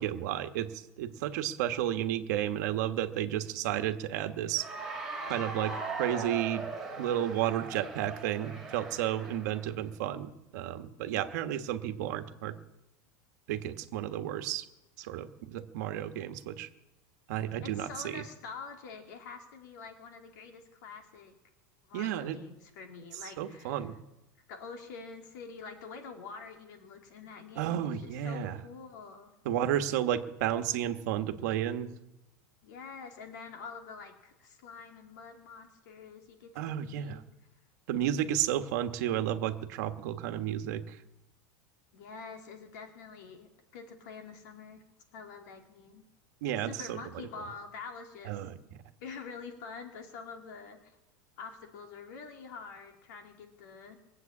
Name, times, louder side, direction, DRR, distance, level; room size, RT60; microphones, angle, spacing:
voice 1, 0.0-4.7 5.3-6.7 7.0-12.6 13.5-14.6 15.0-16.7 17.3-18.2 21.9-22.4 23.4-23.9 27.6-28.6 29.4-31.9 36.6-37.2 37.9-41.0 46.4-47.0 48.2-48.5, right 11 dB, 60° right, 8 dB, 1.3 m, -32 dB
Cheering / Applause, 4.5-9.7, right 4 dB, 5° right, 3.2 m, -39 dB
voice 2, 17.6-21.3 21.9-23.9 24.5-29.3 32.6-37.2 41.9-44.8 45.1-46.0 46.5-48.6 49.0-50.8 51.4-54.0, left 5 dB, 65° left, 4 dB, 2.4 m, -46 dB
21.0 x 7.8 x 8.6 m, 0.97 s
supercardioid pair, 175°, 10 cm